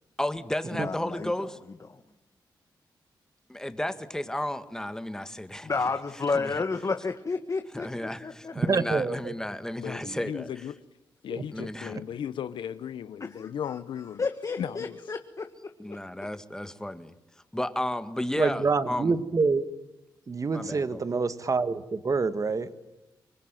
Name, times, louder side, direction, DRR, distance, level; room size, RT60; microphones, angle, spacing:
voice 1, 0.2-1.6 3.5-5.7 6.3-6.5 7.7-10.5 11.5-12.0 15.8-17.1 17.5-19.1 20.5-21.0, left 1 dB, 5° left, 10 dB, 1.9 m, -33 dB
voice 2, 0.7-1.3 5.6-8.5 13.2-13.8 14.2-15.5 15.9-16.0, left 4 dB, 40° left, 7 dB, 1.6 m, -31 dB
voice 3, 8.5-9.3 10.0-10.2 11.4-11.5 11.9-12.0 18.4-19.7 20.3-22.7, right 4 dB, 40° right, 12 dB, 1.7 m, -27 dB
voice 4, 9.8-10.8 11.2-14.2 14.6-15.0, left 9 dB, 80° left, 13 dB, 0.8 m, -36 dB
25.0 x 21.0 x 9.2 m, 0.93 s
cardioid pair, 65°, 8 cm